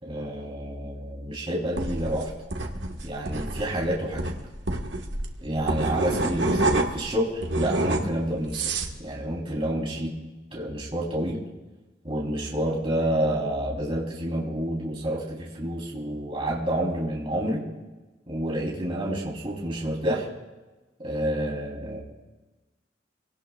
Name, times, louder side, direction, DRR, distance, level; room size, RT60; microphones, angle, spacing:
voice 1, 0.0-2.3 3.0-4.3 5.4-10.1 10.5-11.4 12.0-17.7 18.3-20.3 21.0-22.0, right 1 dB, 30° right, -4 dB, 3.4 m, -29 dB
sound 1, 1.8-7.1 7.4-9.0, right 2 dB, 75° right, 1.6 m, -27 dB
25.5 x 18.0 x 2.4 m, 1.2 s
head